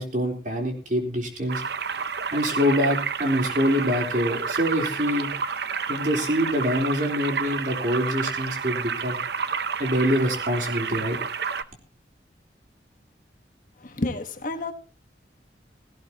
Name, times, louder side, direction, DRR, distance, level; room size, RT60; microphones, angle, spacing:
voice 1, 0.0-1.6 2.3-5.3 5.9-9.2 9.8-11.2, equal, 45° right, 2 dB, 3.8 m, -25 dB
sound 1, 1.5-11.6, right 6 dB, 60° right, 0.7 m, -30 dB
voice 2, 13.8-14.7, left 2 dB, 50° left, 7 dB, 1.5 m, -30 dB
17.0 x 16.5 x 3.0 m, 0.32 s
head